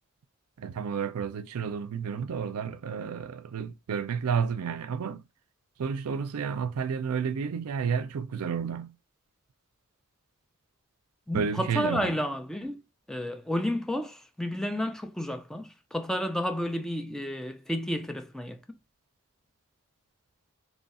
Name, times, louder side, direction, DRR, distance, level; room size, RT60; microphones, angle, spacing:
voice 1, 0.6-5.2 5.8-9.0 11.3-12.1, right 6 dB, 90° right, 0.4 m, -31 dB
voice 2, 11.3-12.8 13.1-18.6, equal, ahead, 0.3 m, -31 dB
3.1 x 2.3 x 4.1 m
head